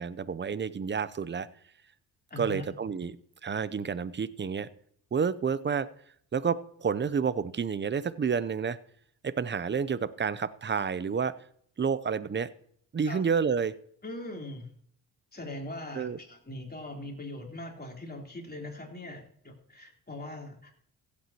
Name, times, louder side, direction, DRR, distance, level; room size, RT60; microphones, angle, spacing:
voice 1, 0.0-1.5 2.4-3.2 3.4-4.7 5.1-5.9 6.3-8.8 9.2-11.3 11.8-12.5 12.9-13.7 15.9-16.2, right 6 dB, 25° right, 17 dB, 0.6 m, -29 dB
voice 2, 2.3-2.7 13.1-13.2 14.0-14.7 15.3-20.7, left 1 dB, 20° left, 0 dB, 3.6 m, -41 dB
16.0 x 8.5 x 3.0 m, 0.64 s
supercardioid pair, 60°, 42 cm